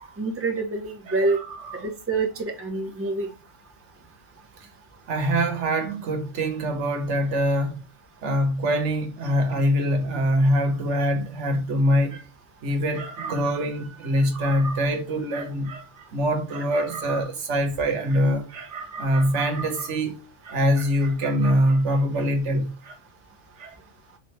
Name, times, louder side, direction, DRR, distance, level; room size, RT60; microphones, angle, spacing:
voice 1, 0.2-1.4 1.7-3.3, right 3 dB, 15° right, 0.6 m, -26 dB
voice 2, 1.1-1.7 5.1-7.8 8.2-12.2 12.6-20.2 20.4-23.0 23.6-23.8, equal, 85° right, 1.3 m, -24 dB
3.7 x 3.2 x 3.0 m
omnidirectional pair, 1.2 m